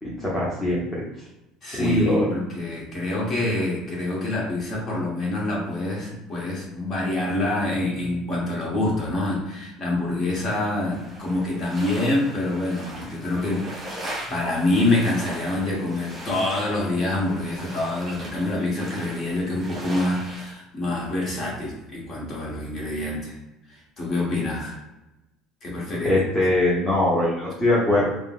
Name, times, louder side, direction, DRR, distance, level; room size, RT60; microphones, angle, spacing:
voice 1, 0.0-1.0 1.7-2.3 26.0-28.2, left 1 dB, 10° left, -7 dB, 0.8 m, -22 dB
voice 2, 1.6-13.7 14.0-23.4 23.7-24.8 25.6-26.2, left 2 dB, 35° left, -4 dB, 1.1 m, -26 dB
sound 1, 10.9-20.5, right 1 dB, 20° right, 1.0 m, -39 dB
3.5 x 2.1 x 2.4 m, 0.95 s
cardioid pair, 130°, 0 cm